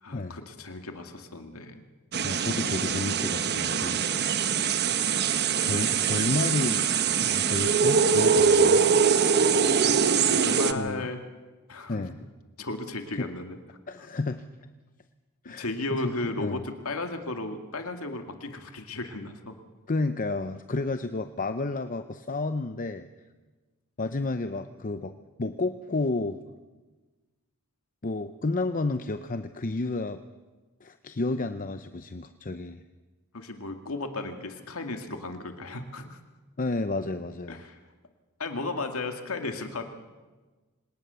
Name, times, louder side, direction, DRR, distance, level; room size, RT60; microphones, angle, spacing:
voice 1, 0.0-1.8 10.3-11.2 11.7-12.1 12.6-13.6 15.5-19.5 33.3-36.2 37.5-37.8 38.4-39.8, left 2 dB, 85° left, 6 dB, 2.1 m, -35 dB
sound 1, 2.1-10.7, right 6 dB, 50° right, 1.0 m, -23 dB
voice 2, 2.2-4.0 5.6-8.8 10.7-11.1 11.9-12.2 13.1-13.3 13.9-14.4 15.4-16.6 19.9-23.1 24.0-25.1 25.4-26.4 28.0-30.2 30.8-32.8 36.6-37.6, left 3 dB, 40° left, 9 dB, 0.7 m, -31 dB
26.5 x 18.5 x 6.9 m, 1.3 s
head